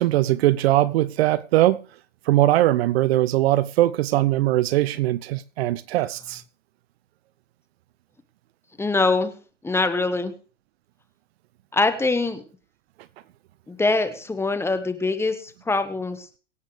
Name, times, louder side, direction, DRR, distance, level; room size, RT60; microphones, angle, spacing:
voice 1, 0.0-1.8 2.3-6.4, right 15 dB, 55° right, 0.7 m, -20 dB
voice 2, 8.8-9.3 9.6-10.3 11.7-12.4 13.7-16.3, left 3 dB, 5° left, 1.2 m, -23 dB
23.5 x 8.4 x 3.3 m
hypercardioid pair, 120°, 36 cm